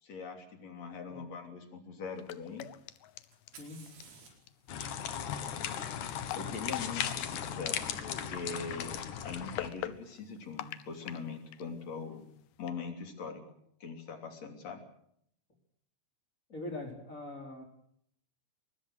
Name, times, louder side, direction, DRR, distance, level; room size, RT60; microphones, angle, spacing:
voice 1, 0.0-2.7 6.4-12.3 12.6-13.4 13.8-14.8, left 5 dB, 40° left, 5 dB, 3.7 m, -42 dB
sound 1, 2.0-12.7, left 14 dB, 80° left, 2.2 m, -46 dB
Fire, 3.3-7.1 9.0-9.1 9.9-10.4, right 5 dB, 80° right, 7.4 m, -59 dB
voice 2, 3.5-3.9 16.5-17.6, left 2 dB, 15° left, 3 dB, 4.0 m, -42 dB
sound 2, 4.7-9.7, left 9 dB, 60° left, 2.1 m, -37 dB
24.0 x 20.5 x 6.5 m, 0.70 s
omnidirectional pair, 5.6 m